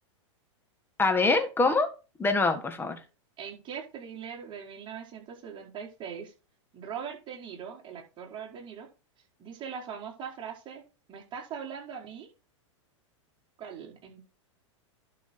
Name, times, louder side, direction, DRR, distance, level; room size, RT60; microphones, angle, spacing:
voice 1, 1.0-1.9 2.2-3.0, left 3 dB, 15° left, 7 dB, 1.6 m, -24 dB
voice 2, 3.4-6.3 6.7-8.9 9.4-10.8 11.1-12.3 13.6-14.2, right 7 dB, 30° right, -2 dB, 4.7 m, -41 dB
11.5 x 5.7 x 4.4 m, 0.32 s
hypercardioid pair, 110°, 16 cm